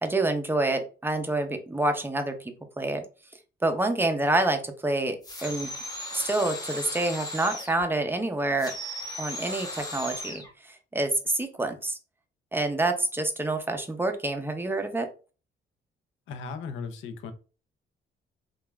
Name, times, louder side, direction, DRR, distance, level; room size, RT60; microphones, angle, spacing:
voice 1, 0.0-3.0 3.6-5.2 5.4-5.7 6.1-8.7 9.2-12.0 12.5-15.1, right 2 dB, 10° right, 6 dB, 0.5 m, -27 dB
sound 1, 5.2-7.8 8.6-10.5, left 1 dB, 20° left, 0.8 m, -37 dB
voice 2, 16.3-17.3, left 5 dB, 75° left, 8 dB, 0.5 m, -36 dB
3.0 x 2.3 x 2.3 m, 0.35 s
cardioid pair, 90°, 20 cm